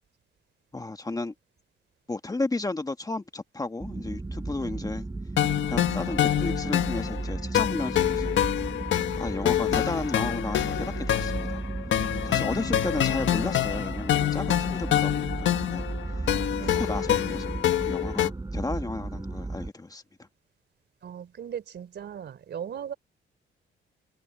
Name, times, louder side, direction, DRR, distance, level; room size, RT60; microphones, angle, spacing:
voice 1, 0.7-1.3 2.1-5.1 5.7-8.4 9.2-11.6 11.9-15.9 16.2-20.0, left 2 dB, 20° left, 1.5 m, -33 dB
sound 1, 3.8-19.7, right 2 dB, 20° right, 7.9 m, -34 dB
voice 2, 4.6-4.9 16.6-16.9 21.0-22.9, right 8 dB, 60° right, 3.7 m, -38 dB
sound 2, 5.4-18.3, left 11 dB, 70° left, 1.5 m, -26 dB
open air
cardioid pair, 90°, 20 cm